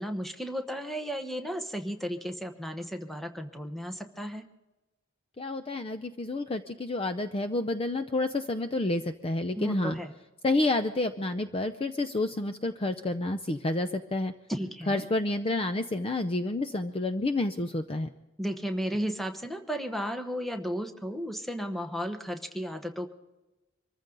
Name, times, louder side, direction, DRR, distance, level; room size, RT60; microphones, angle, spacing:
voice 1, 0.0-4.4 9.6-10.1 14.5-15.1 18.4-23.1, equal, ahead, 6 dB, 1.1 m, -34 dB
voice 2, 5.4-10.0 10.4-14.3 14.9-18.1, left 2 dB, 25° left, 9 dB, 0.6 m, -29 dB
24.5 x 14.5 x 3.9 m, 1.1 s
head